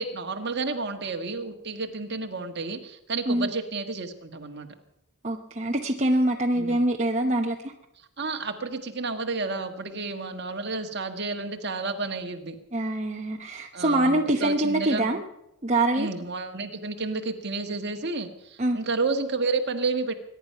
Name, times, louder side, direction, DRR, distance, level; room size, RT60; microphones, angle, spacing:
voice 1, 0.0-4.7 6.5-6.8 8.2-12.6 13.7-15.0 15.9-20.1, right 3 dB, 50° right, 5 dB, 1.6 m, -31 dB
voice 2, 5.2-7.7 12.7-15.2 15.6-16.1 18.6-18.8, right 1 dB, 30° right, 2 dB, 0.9 m, -24 dB
22.5 x 10.5 x 5.7 m, 0.90 s
head